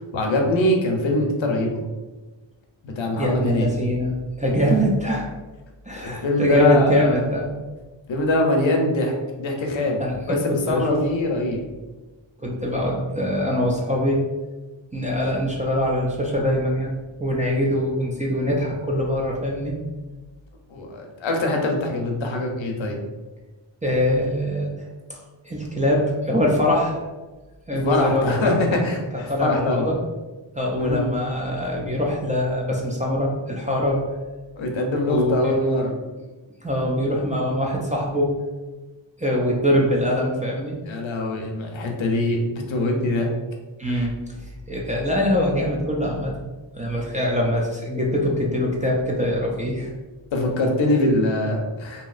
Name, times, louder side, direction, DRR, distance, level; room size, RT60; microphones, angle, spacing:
voice 1, 0.1-1.8 2.8-3.7 6.0-7.2 8.1-9.1 9.4-11.6 20.7-23.0 27.7-29.9 30.7-31.1 34.6-36.0 40.9-43.3 43.9-44.1 50.3-52.1, left 2 dB, 70° left, 2 dB, 0.7 m, -23 dB
voice 2, 3.2-5.3 5.8-7.5 10.0-11.0 12.4-14.2 14.9-16.9 17.2-19.8 23.8-24.7 25.4-27.0 27.7-28.8 29.1-30.0 30.6-34.0 35.1-35.5 36.6-38.4 39.2-40.8 43.8-44.1 44.7-46.3 46.8-49.9, equal, 15° right, -2 dB, 0.4 m, -23 dB
2.8 x 2.8 x 2.4 m, 1.2 s
wide cardioid pair, 75°, 48 cm